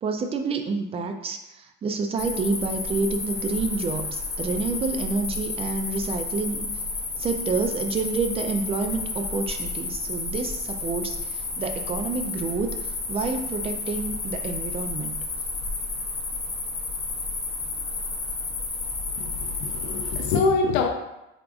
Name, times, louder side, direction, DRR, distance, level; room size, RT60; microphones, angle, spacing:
voice 1, 0.0-6.7 7.2-15.2, right 4 dB, 30° right, 6 dB, 0.4 m, -28 dB
sound 1, 2.2-20.4, left 3 dB, 30° left, 0.7 m, -31 dB
voice 2, 19.1-20.9, left 4 dB, 80° left, 3 dB, 0.4 m, -25 dB
3.6 x 3.5 x 2.4 m, 0.92 s
cardioid pair, 130°, 21 cm